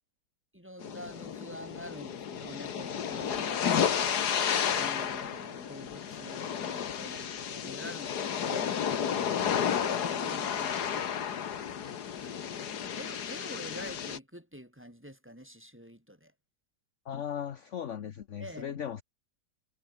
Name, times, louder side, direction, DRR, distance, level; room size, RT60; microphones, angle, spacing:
voice 1, 0.5-4.4 4.7-16.3 18.4-18.8, equal, 5° right, 4.8 m, -47 dB
sound 1, 0.8-14.2, left 8 dB, 70° left, 1.9 m, -32 dB
voice 2, 17.1-19.0, left 9 dB, 50° left, 1.2 m, -37 dB
omnidirectional pair, 1.8 m